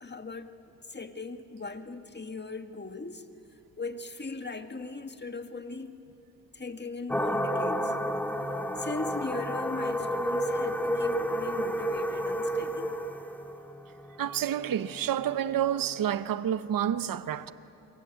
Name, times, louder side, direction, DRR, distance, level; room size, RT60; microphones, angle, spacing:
voice 1, 0.0-3.2 3.8-6.0 6.5-8.0 8.8-13.0, left 3 dB, 30° left, 1.8 m, -39 dB
sound 1, 7.1-16.0, equal, 5° left, 2.1 m, -31 dB
voice 2, 14.2-17.5, right 10 dB, 60° right, 0.8 m, -29 dB
30.0 x 23.0 x 8.3 m
cardioid pair, 60°, 37 cm